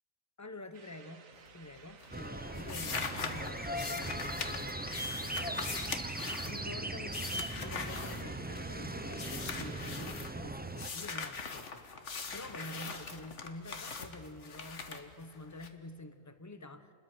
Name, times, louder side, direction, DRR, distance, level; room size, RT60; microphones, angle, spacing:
voice 1, 0.4-1.2 1.5-5.7 6.4-11.8 12.3-16.9, left 1 dB, 15° left, 10 dB, 0.9 m, -47 dB
sound 1, 0.7-9.9, right 5 dB, 70° right, 1.6 m, -57 dB
sound 2, 1.3-1.8 2.0-8.8 9.1-10.3 10.8-15.7, left 5 dB, 60° left, 1.6 m, -41 dB
sound 3, 2.1-10.9, right 1 dB, 15° right, 0.4 m, -39 dB
28.5 x 21.0 x 6.2 m, 2.7 s
omnidirectional pair, 1.5 m